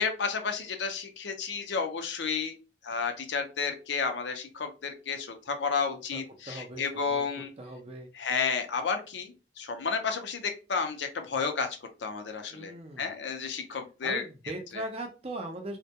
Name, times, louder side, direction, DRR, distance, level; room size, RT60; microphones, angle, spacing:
voice 1, 0.0-2.6 2.8-7.5 8.2-11.7 12.0-12.7 13.0-14.2 14.7-14.8, left 5 dB, 75° left, 6 dB, 0.5 m, -31 dB
voice 2, 6.1-7.3 7.6-8.1 12.5-13.1 14.0-15.8, right 1 dB, 35° right, 3 dB, 0.5 m, -39 dB
2.2 x 2.2 x 2.7 m, 0.31 s
head